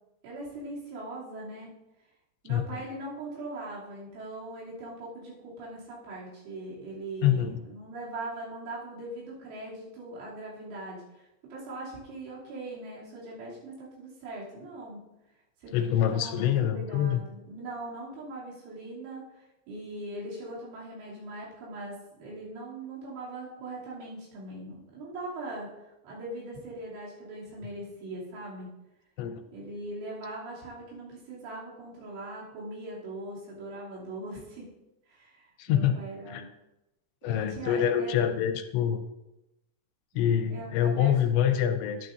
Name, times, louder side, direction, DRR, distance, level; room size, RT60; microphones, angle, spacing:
voice 1, 0.2-1.7 2.4-15.0 15.6-28.7 29.5-34.7 35.1-36.5 37.2-38.3 40.5-41.5, right 2 dB, 90° right, -6 dB, 5.3 m, -41 dB
voice 2, 7.2-7.5 15.7-17.2 29.2-29.4 35.6-35.9 36.3-36.4 37.2-39.0 40.2-42.1, left 9 dB, 85° left, 7 dB, 2.9 m, -26 dB
10.5 x 10.5 x 2.6 m, 0.93 s
omnidirectional pair, 5.4 m